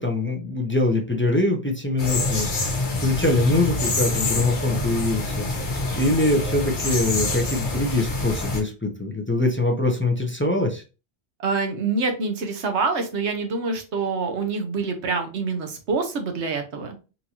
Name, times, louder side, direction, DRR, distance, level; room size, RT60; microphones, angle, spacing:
voice 1, 0.0-10.8, left 2 dB, 15° left, 1 dB, 0.5 m, -23 dB
sound 1, 2.0-8.6, left 2 dB, 80° left, 1.3 m, -26 dB
voice 2, 11.4-17.0, right 4 dB, 80° right, 5 dB, 1.2 m, -26 dB
4.3 x 2.7 x 2.9 m, 0.32 s
omnidirectional pair, 1.1 m